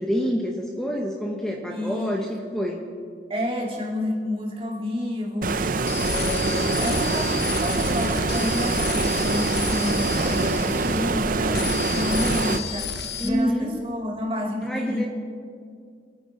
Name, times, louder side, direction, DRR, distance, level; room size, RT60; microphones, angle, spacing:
voice 1, 0.0-2.9 13.2-13.7 14.6-15.0, equal, 5° left, 0 dB, 0.9 m, -27 dB
voice 2, 1.7-2.3 3.3-5.6 6.0-15.1, left 1 dB, 30° right, -2 dB, 2.2 m, -29 dB
Stream, 5.4-12.6, right 3 dB, 50° right, 0.6 m, -24 dB
sound 1, 5.9-11.2 11.5-13.3, left 6 dB, 65° left, 1.0 m, -32 dB
25.5 x 9.2 x 4.2 m, 2.3 s
head